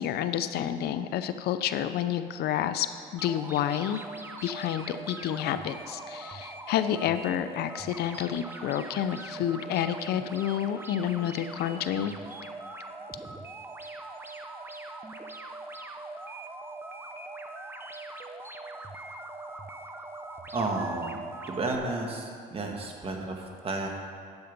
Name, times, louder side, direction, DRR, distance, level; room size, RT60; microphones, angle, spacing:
voice 1, 0.0-4.0 4.4-12.1, left 10 dB, 70° left, 11 dB, 0.5 m, -29 dB
sound 1, 3.2-21.8, right 2 dB, 15° right, 0.7 m, -42 dB
voice 2, 20.5-21.2 21.5-23.9, right 2 dB, 35° right, 1 dB, 1.7 m, -32 dB
10.5 x 7.9 x 5.3 m, 2.3 s
cardioid pair, 110°, 17 cm